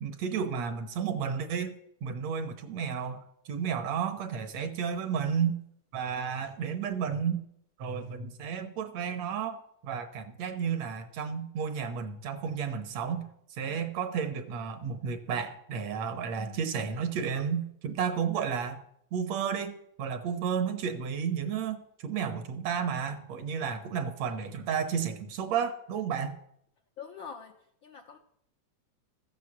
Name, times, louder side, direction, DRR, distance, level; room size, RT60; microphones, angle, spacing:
voice 1, 0.0-5.6 5.9-7.4 7.8-13.3 13.5-18.8 19.1-26.4, right 7 dB, 70° right, 9 dB, 2.2 m, -32 dB
voice 2, 27.0-27.6 27.8-28.2, left 6 dB, 70° left, 3 dB, 1.2 m, -44 dB
14.5 x 8.0 x 7.3 m, 0.73 s
omnidirectional pair, 3.3 m